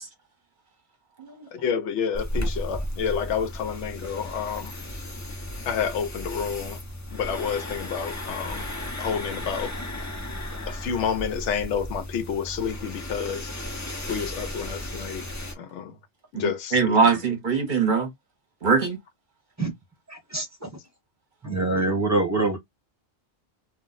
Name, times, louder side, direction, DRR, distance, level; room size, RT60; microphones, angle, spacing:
voice 1, 1.5-4.7 5.6-6.8 7.1-8.7 9.0-9.7 10.7-13.5 14.1-15.2 15.6-16.0 16.3-17.1, left 7 dB, 90° left, 0.9 m, -29 dB
sound 1, 2.1-15.5, left 1 dB, 25° left, 0.4 m, -34 dB
voice 2, 16.3-18.1 18.6-19.0, right 5 dB, 50° right, 0.9 m, -22 dB
voice 3, 20.1-20.7 21.4-22.6, right 2 dB, 15° right, 0.9 m, -25 dB
2.3 x 2.1 x 3.8 m
omnidirectional pair, 1.2 m